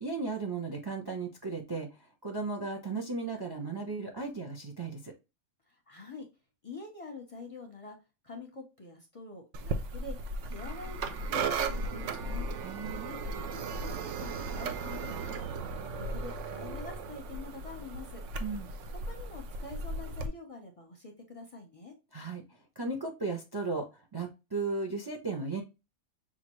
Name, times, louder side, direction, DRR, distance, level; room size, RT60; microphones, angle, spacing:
voice 1, 0.0-5.1 12.6-13.1 18.4-18.7 22.1-22.4 22.8-25.6, right 3 dB, 30° right, 3 dB, 0.4 m, -36 dB
voice 2, 5.7-6.3 6.6-8.0 8.2-10.2 10.5-12.5 13.0-15.7 15.9-18.2 19.0-22.0, left 3 dB, 30° left, 2 dB, 0.7 m, -46 dB
sound 1, 9.5-20.3, right 3 dB, 65° right, 0.8 m, -36 dB
5.8 x 2.5 x 3.0 m, 0.27 s
omnidirectional pair, 1.5 m